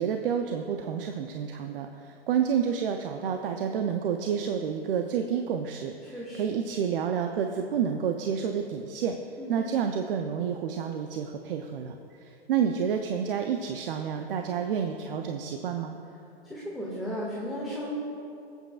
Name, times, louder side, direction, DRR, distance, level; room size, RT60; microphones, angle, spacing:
voice 1, 0.0-5.9 6.3-9.2 9.5-16.0, right 7 dB, 65° right, 5 dB, 0.7 m, -29 dB
voice 2, 6.0-6.6 9.4-9.6 16.4-18.0, left 1 dB, ahead, -8 dB, 1.8 m, -35 dB
21.0 x 8.1 x 2.4 m, 2.7 s
hypercardioid pair, 115°, 31 cm